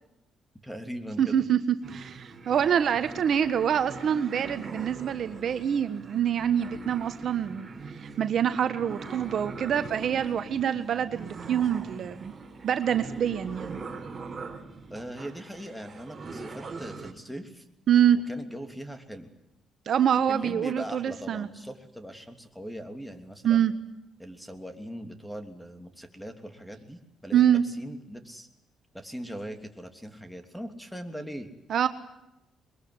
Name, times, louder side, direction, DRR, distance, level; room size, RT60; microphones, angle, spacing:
voice 1, 0.6-1.4 14.9-17.6 18.3-19.3 20.3-23.7 24.2-28.5 28.9-31.5, equal, ahead, 7 dB, 3.0 m, -40 dB
voice 2, 1.2-1.6 1.9-7.7 8.0-12.3 12.6-13.8 17.9-18.2 19.9-21.5 23.4-23.7 27.3-27.6 31.7-31.9, right 9 dB, 60° right, 10 dB, 1.4 m, -25 dB
sound 1, 1.8-17.1, right 4 dB, 30° right, 4.3 m, -42 dB
22.0 x 22.0 x 9.7 m, 0.87 s
cardioid pair, 90°, 0 cm